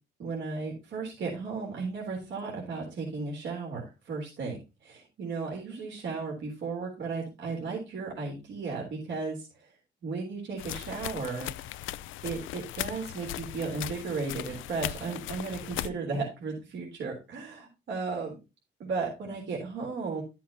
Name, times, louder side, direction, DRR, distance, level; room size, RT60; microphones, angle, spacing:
voice 1, 0.2-9.7 10.0-11.9 12.2-18.4 18.8-20.2, right 4 dB, 70° right, -1 dB, 3.6 m, -35 dB
sound 1, 10.6-15.9, left 14 dB, 80° left, 0.4 m, -38 dB
12.0 x 7.5 x 2.8 m, 0.27 s
cardioid pair, 90°, 20 cm